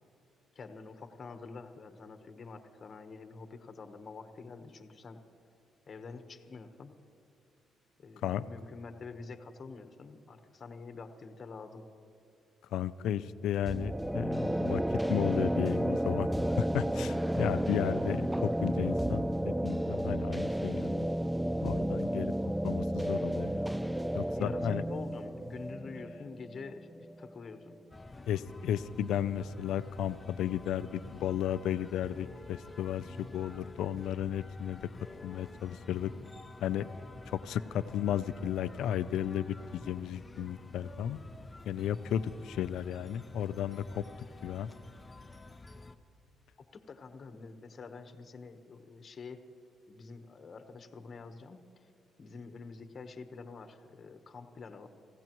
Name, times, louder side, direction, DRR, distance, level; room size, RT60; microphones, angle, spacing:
voice 1, 0.5-5.2 5.9-6.9 8.0-11.9 24.4-27.7 46.6-49.4 49.9-51.9 52.2-54.9, left 4 dB, 45° left, 7 dB, 1.1 m, -47 dB
voice 2, 12.7-14.8 15.1-21.1 21.6-22.3 22.6-23.7 24.1-24.8 28.3-34.9 35.2-36.1 36.6-36.9 37.3-41.2 41.7-44.0 44.4-44.7, left 10 dB, 80° left, 14 dB, 0.5 m, -34 dB
sound 1, 13.7-27.3, right 1 dB, 5° right, 0.3 m, -32 dB
sound 2, 27.9-46.0, left 2 dB, 20° left, 0.7 m, -50 dB
27.0 x 16.0 x 3.1 m, 2.5 s
cardioid pair, 90°, 0 cm